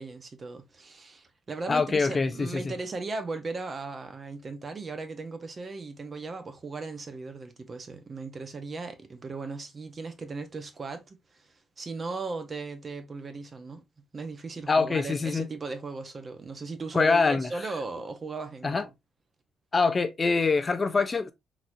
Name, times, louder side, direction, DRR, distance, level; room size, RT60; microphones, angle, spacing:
voice 1, 0.0-13.8 14.1-18.9, right 3 dB, 35° right, 0.8 m, -37 dB
voice 2, 1.7-2.7 14.7-15.5 16.9-17.5 18.6-18.9 19.7-21.3, left 4 dB, 30° left, 0.4 m, -24 dB
4.0 x 3.0 x 2.4 m
cardioid pair, 90°, 0 cm